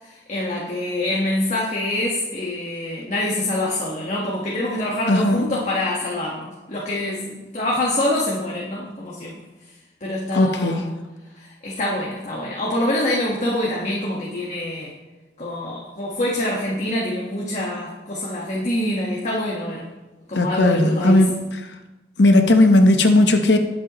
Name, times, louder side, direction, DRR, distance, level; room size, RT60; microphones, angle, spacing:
voice 1, 0.0-9.4 10.0-10.9 11.4-14.9 15.4-19.9 20.3-21.2, left 1 dB, 40° left, -4 dB, 1.6 m, -25 dB
voice 2, 5.1-5.5 10.3-10.9 20.3-21.4 22.2-23.6, left 1 dB, 80° left, 5 dB, 1.1 m, -16 dB
20.0 x 7.7 x 3.1 m, 1.1 s
head